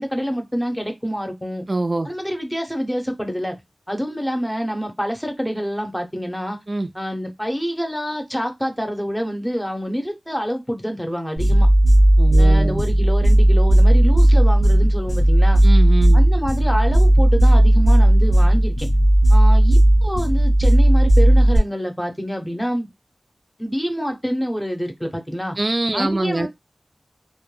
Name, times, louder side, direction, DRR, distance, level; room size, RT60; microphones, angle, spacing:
voice 1, 0.0-1.6 2.0-3.6 3.9-6.6 6.9-11.7 12.4-15.6 16.1-18.9 19.3-22.9 23.6-25.6 25.9-26.5, equal, 10° left, 0.7 m, -26 dB
voice 2, 1.7-2.1 6.7-6.9 12.2-12.8 15.6-16.2 25.6-26.5, right 2 dB, 50° right, 0.3 m, -23 dB
sound 1, 11.4-21.6, right 1 dB, 65° left, 0.9 m, -14 dB
2.2 x 2.1 x 3.1 m
wide cardioid pair, 50°, 0 cm